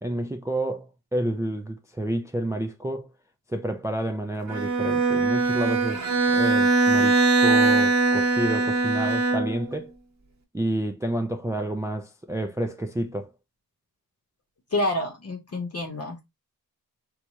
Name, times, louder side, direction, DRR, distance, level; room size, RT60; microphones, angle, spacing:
voice 1, 0.0-3.1 3.5-9.9 10.5-13.3, right 1 dB, 10° right, 0.3 m, -30 dB
Bowed string instrument, 4.5-9.8, right 3 dB, 45° right, 1.0 m, -21 dB
voice 2, 14.7-16.2, left 1 dB, 40° left, 0.8 m, -28 dB
4.5 x 2.3 x 2.7 m
wide cardioid pair, 130°, 36 cm